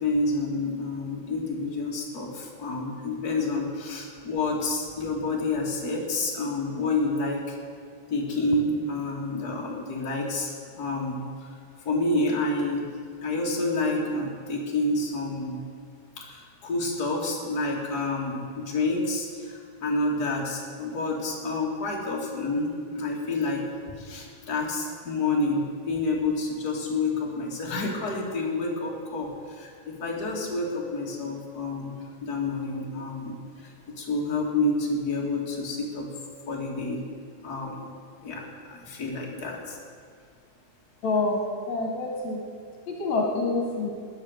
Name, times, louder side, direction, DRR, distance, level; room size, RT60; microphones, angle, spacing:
voice 1, 0.0-7.6 8.1-11.2 11.8-12.9 13.2-15.6 16.2-23.7 24.0-36.1 36.5-37.0 37.4-37.9 38.2-39.8, left 2 dB, 30° left, -3 dB, 2.9 m, -29 dB
voice 2, 41.0-41.4 41.7-42.4 42.9-43.9, left 3 dB, 65° left, 0 dB, 3.0 m, -26 dB
20.0 x 9.4 x 6.6 m, 2.1 s
omnidirectional pair, 3.5 m